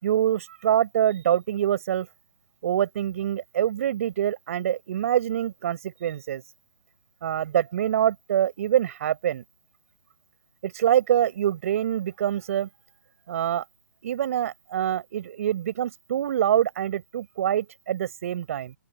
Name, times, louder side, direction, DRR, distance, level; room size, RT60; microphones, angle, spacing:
voice 1, 0.0-2.1 2.6-6.4 7.2-9.4 10.6-12.7 13.3-13.6 14.0-18.7, right 11 dB, 45° right, 5.6 m, -25 dB
open air
hypercardioid pair, 150°, 10 cm